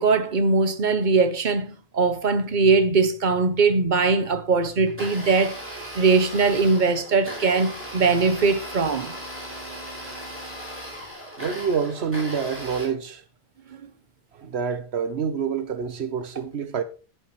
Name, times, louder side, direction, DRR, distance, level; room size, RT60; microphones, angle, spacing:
voice 1, 0.0-5.5 5.9-9.1, right 4 dB, 50° right, 1.0 m, -21 dB
Domestic sounds home sounds, 4.8-12.8, equal, 10° right, 4.7 m, -37 dB
voice 2, 11.4-13.2 14.3-16.8, right 6 dB, 90° right, 1.3 m, -27 dB
11.0 x 9.0 x 3.2 m
omnidirectional pair, 1.1 m